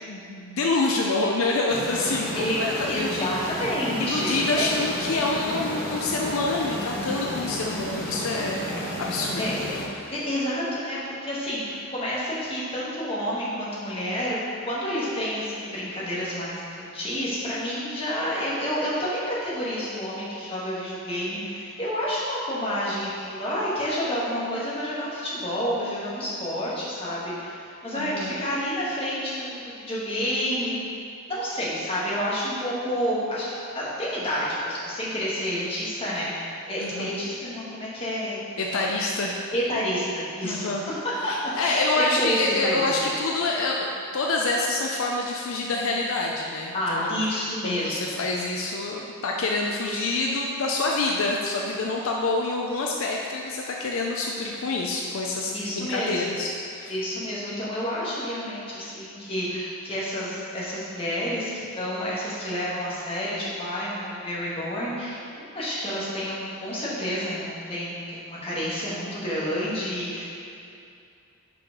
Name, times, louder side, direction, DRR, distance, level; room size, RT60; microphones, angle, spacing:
voice 1, 0.0-3.1 3.4-3.5 4.0-9.6 28.0-28.3 36.8-37.1 38.6-39.4 40.4-40.8 41.3-47.1 47.6-56.9, left 2 dB, 70° left, -1 dB, 0.5 m, -27 dB
sound 1, 1.7-9.8, equal, 40° left, 1.4 m, -32 dB
voice 2, 2.9-4.7 9.4-9.7 10.1-14.4 14.6-30.8 31.3-33.5 33.7-39.1 39.5-40.7 41.2-42.9 46.7-48.1 49.8-50.1 55.5-56.2 56.9-70.2, equal, 25° left, -8 dB, 1.5 m, -29 dB
5.9 x 4.9 x 5.2 m, 2.5 s
head